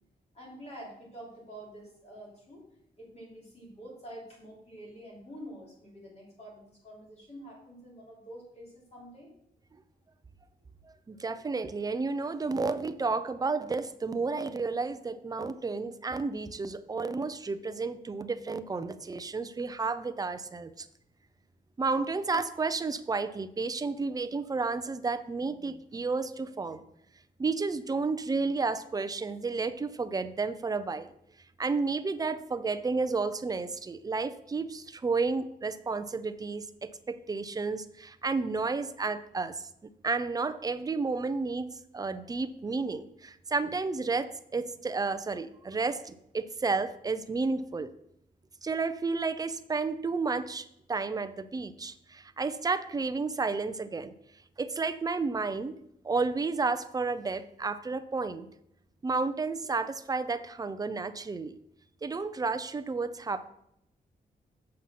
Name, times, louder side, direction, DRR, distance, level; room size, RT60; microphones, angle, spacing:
voice 1, 0.3-2.6 3.0-9.3, right 1 dB, 40° left, -4 dB, 3.2 m, -47 dB
voice 2, 11.1-20.9 21.8-26.8 27.4-31.1 31.6-39.7 40.0-47.9 48.6-54.1 54.6-55.7 56.0-58.5 59.0-61.5 62.0-63.5, right 4 dB, 20° right, 12 dB, 0.4 m, -31 dB
7.5 x 5.4 x 5.9 m, 0.75 s
wide cardioid pair, 175°, 17 cm